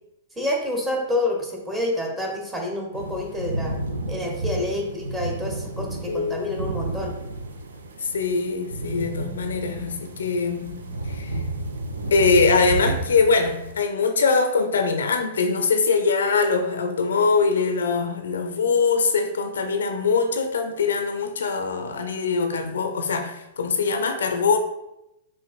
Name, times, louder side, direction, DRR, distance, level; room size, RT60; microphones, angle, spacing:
voice 1, 0.4-3.7 4.1-7.1, left 1 dB, 15° right, 0 dB, 0.9 m, -28 dB
sound 1, 2.9-13.7, right 2 dB, 75° right, 0.4 m, -31 dB
voice 2, 6.1-6.7 8.0-10.8 11.1-11.4 12.1-24.6, left 4 dB, 70° left, 6 dB, 0.4 m, -22 dB
5.7 x 2.5 x 2.4 m, 0.89 s
figure-of-eight pair, 105°, 0 cm